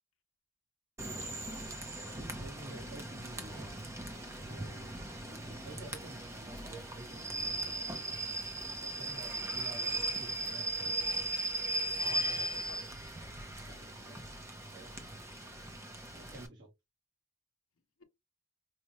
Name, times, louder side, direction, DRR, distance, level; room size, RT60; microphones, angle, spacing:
Rain / Train, 1.0-16.5, right 1 dB, 15° right, 0.5 m, -38 dB
voice 1, 2.2-3.7 4.4-7.9 8.8-11.3 13.6-15.1 16.1-16.7, right 1 dB, 55° right, 1.2 m, -51 dB
voice 2, 12.0-12.9 13.2-13.6, left 4 dB, 80° left, 0.7 m, -51 dB
4.8 x 2.1 x 2.9 m
head